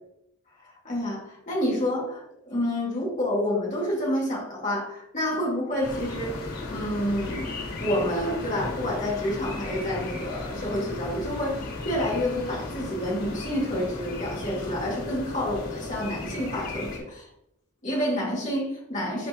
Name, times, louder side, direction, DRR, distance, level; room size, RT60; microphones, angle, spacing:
voice 1, 0.8-7.5 7.8-17.3 17.8-19.3, equal, 35° left, -4 dB, 2.2 m, -29 dB
sound 1, 5.8-17.0, left 2 dB, 90° left, 2.8 m, -35 dB
12.0 x 4.3 x 3.0 m, 0.78 s
head